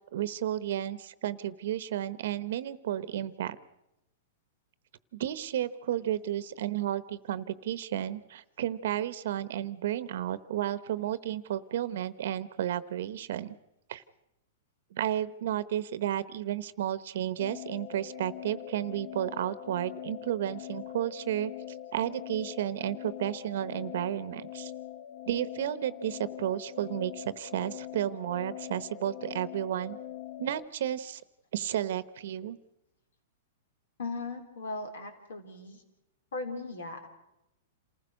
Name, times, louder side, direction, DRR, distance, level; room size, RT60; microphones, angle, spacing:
voice 1, 0.1-3.6 5.1-13.5 13.9-14.0 14.9-21.5 21.9-24.7 25.3-30.0 30.4-31.2 31.5-32.6, right 11 dB, 65° right, 16 dB, 0.9 m, -32 dB
sound 1, 17.4-30.7, left 12 dB, 50° left, 0.8 m, -43 dB
voice 2, 34.0-35.8 36.3-37.1, left 3 dB, 85° left, 6 dB, 4.0 m, -38 dB
27.5 x 15.0 x 6.4 m, 0.89 s
hypercardioid pair, 150°, 0 cm